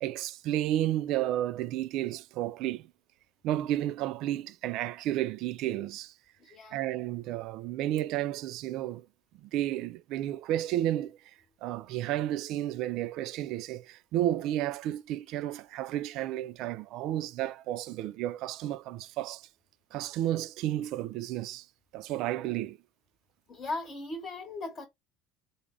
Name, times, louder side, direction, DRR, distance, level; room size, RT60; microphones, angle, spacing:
voice 1, 0.0-2.9 3.4-6.1 6.7-9.1 9.4-11.2 11.6-19.4 19.9-21.7 21.9-22.8, right 13 dB, 60° right, 0.3 m, -32 dB
voice 2, 6.4-6.9 23.5-24.9, left 2 dB, 40° left, 0.9 m, -38 dB
3.4 x 2.0 x 3.6 m
hypercardioid pair, 80°, 0 cm